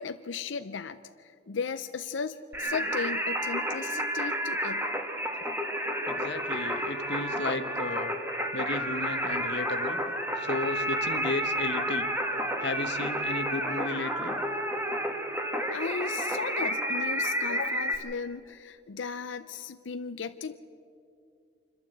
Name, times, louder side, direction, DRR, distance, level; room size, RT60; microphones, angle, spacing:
voice 1, 0.0-4.9 15.7-20.6, left 5 dB, 90° left, 10 dB, 0.6 m, -36 dB
Singing, 2.5-17.9, equal, 10° right, 1.6 m, -30 dB
voice 2, 6.1-8.2 8.5-10.0 10.4-12.1 12.6-14.4, left 2 dB, 65° left, 11 dB, 1.1 m, -34 dB
26.5 x 12.5 x 7.9 m, 2.4 s
head